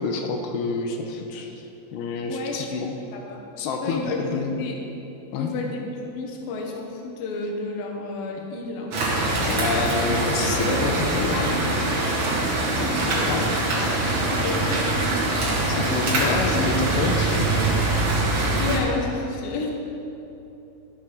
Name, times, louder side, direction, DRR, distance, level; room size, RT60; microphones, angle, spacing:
voice 1, 0.0-1.5 1.9-2.9 3.6-4.6 5.3-5.5 9.4-11.4 12.8-13.5 15.4-17.5, left 4 dB, 90° left, 3 dB, 2.8 m, -28 dB
voice 2, 2.3-2.6 3.1-3.4 3.8-4.2 4.6-4.8 5.4-9.0 11.3-11.7 14.3-15.0 18.6-19.7, left 3 dB, 70° left, 1 dB, 2.5 m, -31 dB
sound 1, 8.9-18.8, right 2 dB, 55° right, 2.2 m, -23 dB
13.0 x 7.4 x 3.7 m, 2.9 s
omnidirectional pair, 4.8 m